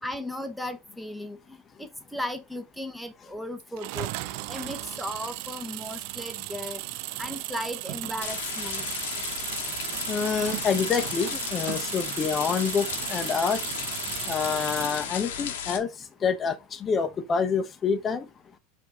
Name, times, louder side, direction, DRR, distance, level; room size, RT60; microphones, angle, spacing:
voice 1, 0.0-4.1 4.5-6.8 7.2-8.9, left 1 dB, ahead, 0.9 m, -36 dB
sound 1, 3.8-15.2, right 18 dB, 65° right, 0.3 m, -35 dB
sound 2, 8.2-15.8, left 8 dB, 80° left, 1.0 m, -34 dB
voice 2, 10.1-13.6 14.3-15.9 16.2-18.3, left 6 dB, 25° left, 0.7 m, -27 dB
4.6 x 2.8 x 4.1 m
supercardioid pair, 115°, 0 cm